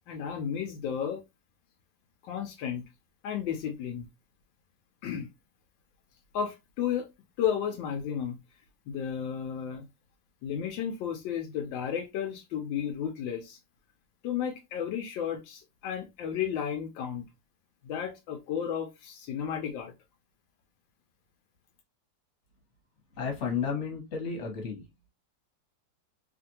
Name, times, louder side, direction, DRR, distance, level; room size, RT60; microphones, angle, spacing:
voice 1, 0.1-1.2 2.2-2.8 3.2-4.1 5.0-5.3 6.3-7.1 7.4-8.4 8.9-9.9 10.4-13.6 14.2-17.3 17.8-19.9, left 8 dB, 80° left, 1.3 m, -33 dB
voice 2, 23.2-24.8, left 6 dB, 45° left, 1.3 m, -32 dB
3.1 x 2.5 x 2.7 m
omnidirectional pair, 2.0 m